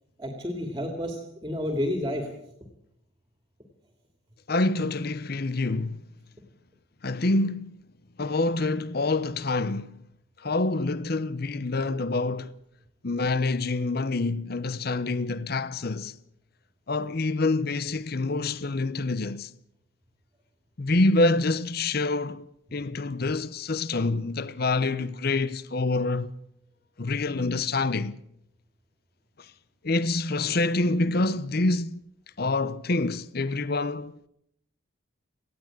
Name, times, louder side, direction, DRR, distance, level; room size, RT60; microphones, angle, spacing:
voice 1, 0.2-2.3, left 1 dB, 20° right, 2.4 m, -30 dB
voice 2, 4.5-6.0 7.0-7.7 8.2-9.9 10.4-12.5 13.0-16.2 16.9-19.5 20.8-22.4 22.7-26.3 27.0-28.2 29.8-32.0 32.4-34.1, left 2 dB, 50° left, 0.7 m, -26 dB
18.5 x 16.0 x 8.8 m
head